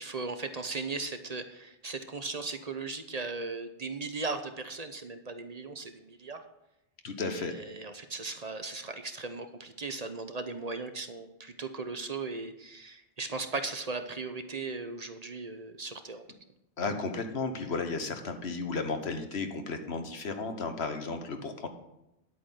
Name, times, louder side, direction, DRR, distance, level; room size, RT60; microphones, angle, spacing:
voice 1, 0.0-6.4 7.2-16.2, right 3 dB, 40° right, 8 dB, 0.9 m, -37 dB
voice 2, 7.0-7.5 16.8-21.7, left 4 dB, 85° left, 6 dB, 1.5 m, -34 dB
10.5 x 8.3 x 5.7 m, 0.87 s
omnidirectional pair, 1.1 m